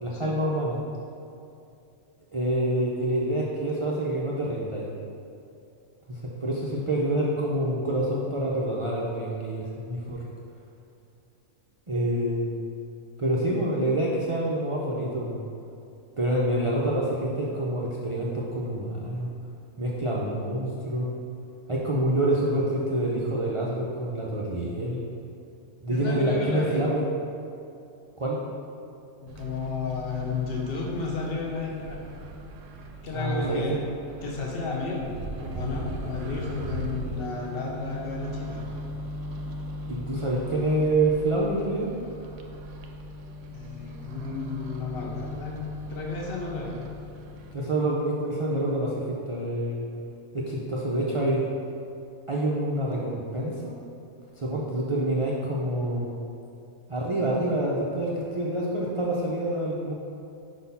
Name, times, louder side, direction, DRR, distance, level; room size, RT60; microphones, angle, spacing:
voice 1, 0.0-0.8 2.3-4.9 6.1-10.3 11.9-12.5 13.2-15.4 16.2-19.3 19.8-21.1 21.7-25.0 25.8-27.0 28.2-28.4 33.1-33.8 39.9-41.9 47.5-49.8 50.3-51.4 52.3-53.7 54.4-56.1 56.9-59.9, right 1 dB, 45° right, -4 dB, 0.4 m, -27 dB
voice 2, 25.9-26.8 29.2-32.0 33.0-33.8 34.2-35.1 35.4-38.6 43.5-45.6 45.9-46.7, left 4 dB, 50° left, -2 dB, 1.1 m, -32 dB
Microwave oven, 29.3-47.5, equal, 70° right, 0.9 m, -38 dB
5.2 x 4.1 x 5.5 m, 2.6 s
omnidirectional pair, 1.4 m